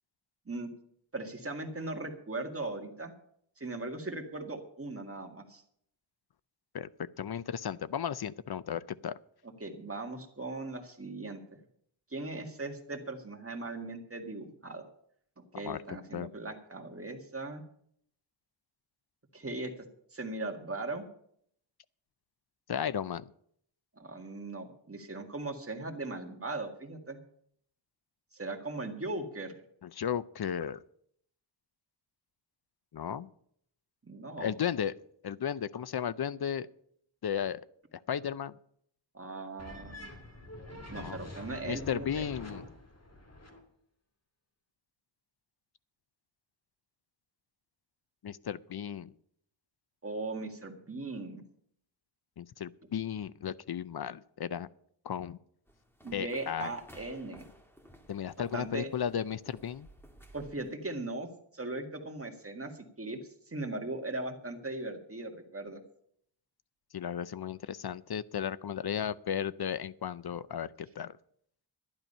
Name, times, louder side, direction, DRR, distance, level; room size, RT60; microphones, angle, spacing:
voice 1, 1.1-3.1 3.6-5.6 9.6-11.6 12.1-14.9 15.4-17.6 19.3-19.7 20.1-21.0 24.0-27.2 28.3-29.5 34.0-34.5 39.1-40.1 40.9-42.2 50.0-51.4 56.0-57.5 58.4-58.9 60.3-61.3 61.5-63.2 63.5-65.8, right 2 dB, 30° right, 4 dB, 1.9 m, -39 dB
voice 2, 6.7-9.1 15.5-16.3 22.7-23.2 29.8-30.8 32.9-33.3 34.4-34.9 35.2-36.7 37.2-37.6 38.1-38.5 41.0-41.2 41.7-42.7 48.2-49.1 52.4-54.7 55.0-55.4 56.1-56.7 58.1-59.9 66.9-71.2, left 8 dB, 55° left, 18 dB, 0.6 m, -35 dB
sound 1, 39.6-43.6, left 1 dB, 35° left, 2.6 m, -46 dB
sound 2, 55.7-60.7, equal, 5° left, 1.9 m, -56 dB
12.0 x 10.5 x 5.5 m, 0.66 s
wide cardioid pair, 85°, 47 cm